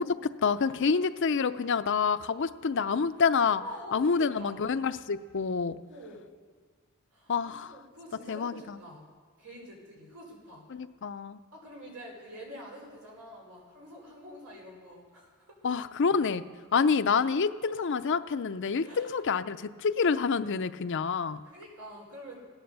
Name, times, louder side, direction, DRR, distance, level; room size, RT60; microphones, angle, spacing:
voice 1, 0.0-3.6 3.9-5.8 7.3-7.7 8.3-8.8 10.7-11.4 15.6-16.4 16.7-21.4, left 5 dB, 55° left, 12 dB, 0.5 m, -27 dB
voice 2, 3.6-4.6 5.9-6.3 7.1-9.0 9.4-10.7 11.5-15.7 18.8-19.1 21.0-21.1 21.4-22.5, equal, 90° right, -2 dB, 5.2 m, -47 dB
16.5 x 10.5 x 6.8 m, 1.5 s
head